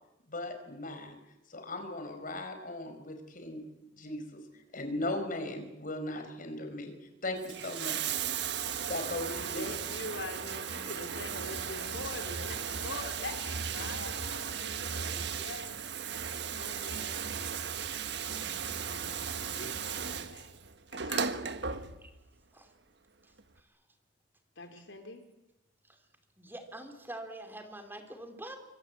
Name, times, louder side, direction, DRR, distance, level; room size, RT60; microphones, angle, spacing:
voice 1, 0.3-1.2 1.5-3.6 3.9-4.4 4.7-7.0 7.2-8.2 8.9-9.7, left 2 dB, 50° left, 6 dB, 4.9 m, -38 dB
Bathtub (filling or washing), 7.3-22.3 23.4-23.5, right 7 dB, 65° right, 1.5 m, -36 dB
voice 2, 9.5-15.8 16.5-17.3 18.2-20.5 20.9-22.0 24.6-25.2, left 2 dB, 85° left, 6 dB, 3.9 m, -44 dB
voice 3, 26.4-28.6, right 1 dB, 10° right, 7 dB, 3.1 m, -44 dB
26.0 x 24.5 x 8.5 m, 0.88 s
head